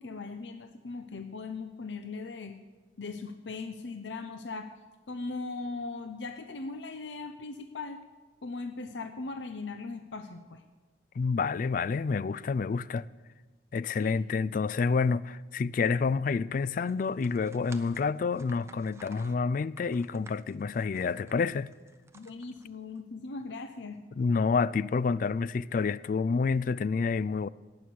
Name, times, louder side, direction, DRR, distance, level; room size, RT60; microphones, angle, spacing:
voice 1, 0.0-2.5 3.0-4.7 5.1-8.0 8.4-10.6 14.0-14.2 22.1-24.0, left 3 dB, 80° left, 0.7 m, -39 dB
voice 2, 11.2-13.1 13.7-21.7 24.2-27.5, left 4 dB, 50° left, 0.3 m, -28 dB
sound 1, 16.8-23.0, right 3 dB, 15° right, 0.7 m, -54 dB
18.5 x 6.2 x 8.5 m
head